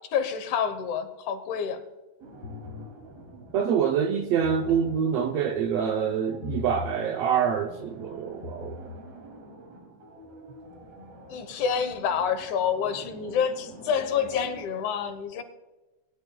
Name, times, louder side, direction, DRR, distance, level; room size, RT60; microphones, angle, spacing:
voice 1, 0.0-1.8 11.3-15.4, left 7 dB, 75° left, 2.4 m, -28 dB
sound 1, 2.2-14.7, right 2 dB, 55° right, 3.6 m, -48 dB
sound 2, 2.4-2.9 4.3-5.0 6.4-7.0 8.3-9.0, left 6 dB, 45° left, 1.3 m, -38 dB
voice 2, 3.5-8.8, right 7 dB, 75° right, 1.5 m, -26 dB
20.5 x 10.5 x 2.2 m
omnidirectional pair, 3.5 m